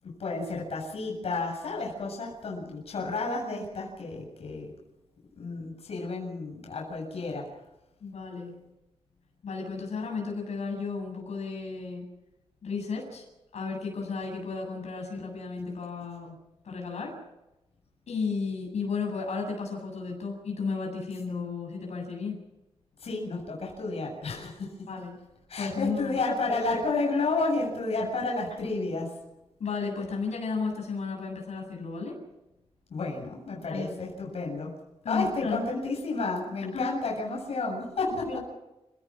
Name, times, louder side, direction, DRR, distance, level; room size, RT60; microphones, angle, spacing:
voice 1, 0.0-4.7 5.4-7.5 23.0-24.7 25.5-29.1 32.9-34.7 35.1-38.4, left 3 dB, 65° left, -1 dB, 7.5 m, -31 dB
voice 2, 8.0-8.5 9.4-12.0 12.6-13.2 13.5-16.4 16.6-17.1 18.1-22.4 24.9-25.2 25.6-26.2 29.6-32.2 33.7-33.9 35.0-35.6 36.7-36.9 38.3-38.4, left 4 dB, 80° left, 1 dB, 7.7 m, -33 dB
29.5 x 17.5 x 6.2 m, 0.95 s
wide cardioid pair, 145°, 11 cm